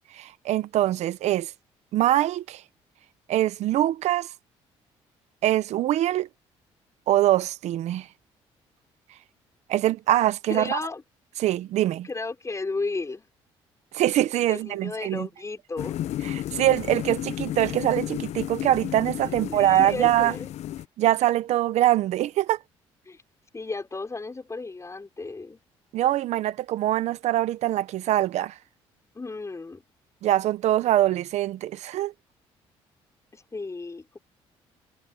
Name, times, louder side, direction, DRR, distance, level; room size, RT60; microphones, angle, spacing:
voice 1, 0.1-1.5 1.9-2.6 3.3-4.3 5.4-6.3 7.1-8.1 9.7-10.8 11.4-12.1 13.9-15.3 16.2-20.3 21.0-22.6 25.9-28.6 30.2-32.1, right 13 dB, 70° right, 1.1 m, -23 dB
voice 2, 10.5-11.0 12.0-13.3 14.5-16.0 19.3-20.5 23.1-23.2 23.5-25.6 29.1-29.8 33.3-34.2, left 3 dB, 25° left, 5.7 m, -34 dB
sound 1, 15.8-20.8, left 13 dB, 70° left, 0.9 m, -33 dB
supercardioid pair, 65°, 12 cm